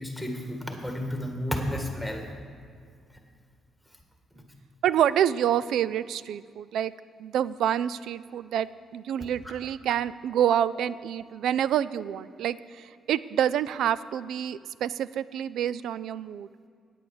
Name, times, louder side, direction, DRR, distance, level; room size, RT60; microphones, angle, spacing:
voice 1, 0.0-2.2, equal, ahead, 2 dB, 1.8 m, -32 dB
voice 2, 4.8-6.9 7.2-16.5, right 10 dB, 75° right, 17 dB, 0.3 m, -27 dB
9.6 x 8.5 x 6.5 m, 2.2 s
cardioid pair, 90°, 0 cm